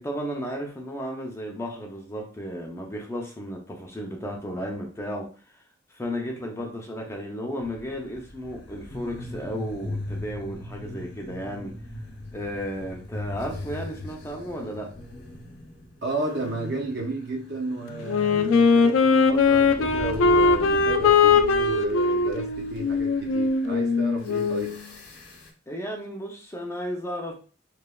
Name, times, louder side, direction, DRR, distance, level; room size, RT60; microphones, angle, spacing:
voice 1, 0.0-5.3 5.9-11.7 12.3-14.9 25.7-27.3, equal, 15° left, 0 dB, 0.4 m, -34 dB
sound 1, 7.6-25.5, left 1 dB, 60° left, 0.7 m, -40 dB
voice 2, 16.0-24.7, right 2 dB, 55° right, 1 dB, 0.6 m, -32 dB
Wind instrument woodwind instrument, 18.0-24.8, left 4 dB, 80° left, 0.3 m, -20 dB
3.0 x 2.1 x 2.2 m, 0.38 s
head